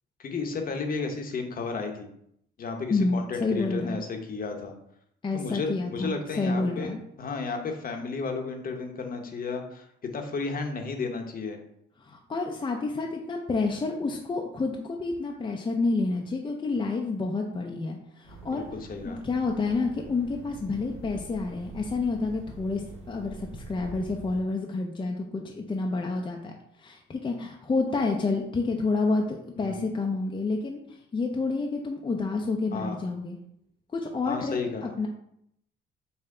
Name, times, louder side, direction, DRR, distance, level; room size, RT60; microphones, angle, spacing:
voice 1, 0.2-2.1 2.6-4.7 5.3-11.6 18.5-19.2 25.6-25.8 29.6-30.0 32.7-33.0 34.2-34.9, left 4 dB, 45° left, 4 dB, 0.9 m, -33 dB
voice 2, 2.9-4.0 5.2-7.0 12.0-18.6 19.0-22.8 23.1-26.5 26.8-30.8 31.1-33.4 33.9-35.1, left 3 dB, 25° left, 1 dB, 0.5 m, -29 dB
sound 1, 18.2-24.4, right 3 dB, 80° right, 1.4 m, -45 dB
5.5 x 2.2 x 3.7 m, 0.73 s
cardioid pair, 90°, 20 cm